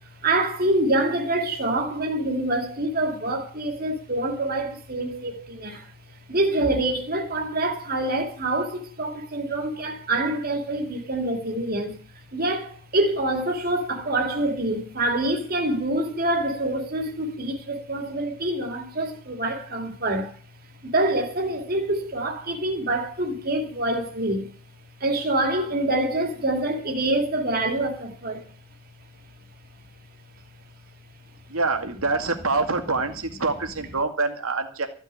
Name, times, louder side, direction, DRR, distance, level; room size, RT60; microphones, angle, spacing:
voice 1, 0.2-5.9 6.3-12.0 12.3-20.3 20.8-24.5 25.0-28.4, right 1 dB, 40° right, 2.5 m, -26 dB
voice 2, 31.5-34.9, right 3 dB, 70° right, 2.2 m, -25 dB
14.5 x 6.6 x 10.0 m
head